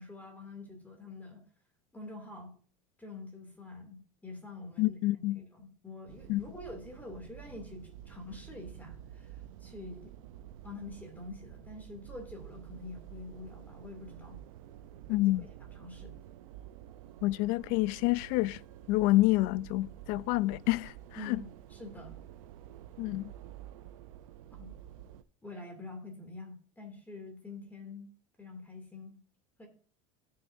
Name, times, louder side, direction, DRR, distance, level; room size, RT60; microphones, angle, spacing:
voice 1, 0.0-1.4 1.9-2.5 3.0-5.0 5.4-10.1 10.6-14.4 15.1-16.1 21.2-22.2 24.5-24.7 25.4-28.1 28.4-29.2 29.6-29.7, left 2 dB, 10° left, 2.5 m, -46 dB
voice 2, 4.8-5.4 6.3-6.4 15.1-15.4 17.2-18.6 18.9-20.9 21.3-21.4 23.0-23.3, left 18 dB, 60° left, 0.4 m, -28 dB
sound 1, 6.1-25.2, right 11 dB, 90° right, 0.6 m, -50 dB
16.5 x 6.8 x 2.6 m
supercardioid pair, 125°, 17 cm